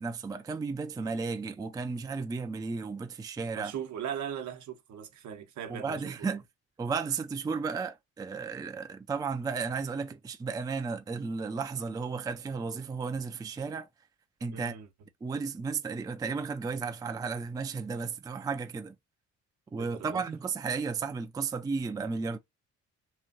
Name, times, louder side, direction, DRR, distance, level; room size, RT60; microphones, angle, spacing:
voice 1, 0.0-3.7 5.7-6.4 6.8-13.9 14.4-14.7 15.2-19.0 19.7-22.4, right 5 dB, 15° right, 0.3 m, -34 dB
voice 2, 3.6-6.3 14.5-14.9 19.8-20.4, right 8 dB, 70° right, 0.8 m, -39 dB
3.0 x 2.5 x 2.5 m
cardioid pair, 90°, 30 cm